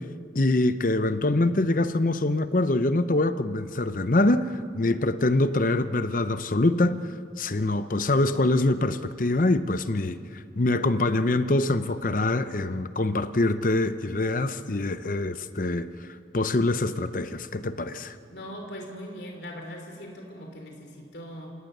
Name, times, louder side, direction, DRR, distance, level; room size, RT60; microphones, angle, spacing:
voice 1, 0.3-7.1 7.4-16.1 16.3-18.1, left 2 dB, 50° left, 12 dB, 0.8 m, -24 dB
voice 2, 18.3-21.5, equal, 70° left, 2 dB, 3.2 m, -40 dB
27.5 x 18.0 x 6.7 m, 2.3 s
head